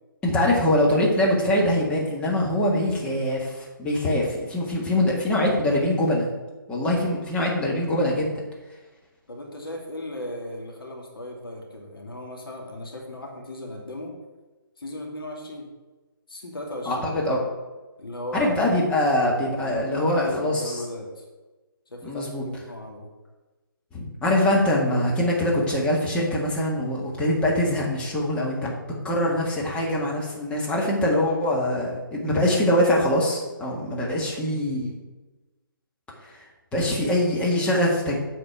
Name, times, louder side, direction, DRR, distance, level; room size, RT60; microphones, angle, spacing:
voice 1, 0.2-6.3 6.7-8.4 16.9-17.4 18.3-20.8 22.0-22.5 23.9-28.7 29.0-34.9 36.3-36.4 36.7-38.2, left 1 dB, 10° left, -3 dB, 1.7 m, -23 dB
voice 2, 9.3-14.1 14.8-15.7 16.3-17.1 18.0-18.6 19.6-21.2 21.9-23.1 24.3-24.5, left 1 dB, 75° left, 1 dB, 2.5 m, -36 dB
8.2 x 4.4 x 6.8 m, 1.2 s
figure-of-eight pair, 145°, 12 cm